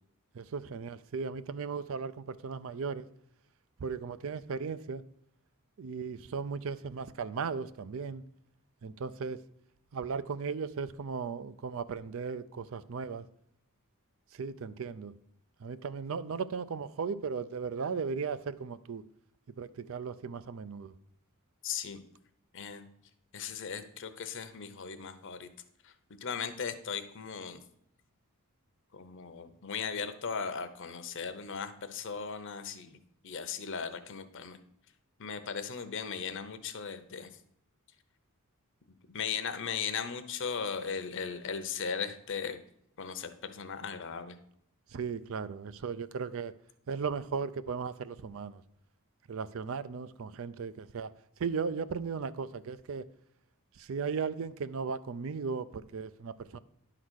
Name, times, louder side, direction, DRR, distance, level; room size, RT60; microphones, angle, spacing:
voice 1, 0.3-3.1 3.8-5.0 5.8-8.2 8.8-9.4 9.9-13.3 14.3-15.1 15.6-19.0 19.6-20.9 44.9-46.5 46.9-48.6 49.3-51.1 51.4-53.1 53.8-56.6, right 5 dB, 65° right, 0.4 m, -36 dB
voice 2, 21.6-22.0 22.5-22.8 23.3-25.5 25.8-25.9 26.2-27.6 28.9-33.0 33.2-34.6 35.2-37.3 39.1-42.6 43.0-44.4, left 6 dB, 60° left, 0.7 m, -37 dB
10.5 x 3.9 x 6.3 m
head